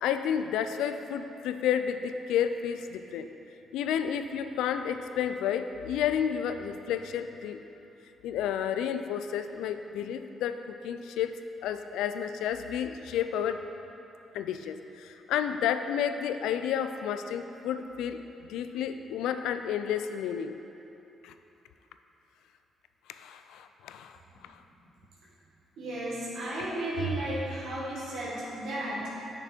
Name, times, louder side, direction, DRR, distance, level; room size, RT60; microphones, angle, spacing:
voice 1, 0.0-3.3 3.7-7.6 8.2-11.3 11.6-13.6 14.3-18.2 18.5-20.5 21.2-21.3 23.1-24.2 24.4-24.5, left 9 dB, 90° left, 9 dB, 0.3 m, -31 dB
voice 2, 25.8-29.1, right 1 dB, 75° right, -8 dB, 1.6 m, -33 dB
6.6 x 6.0 x 4.4 m, 3.0 s
cardioid pair, 90°, 0 cm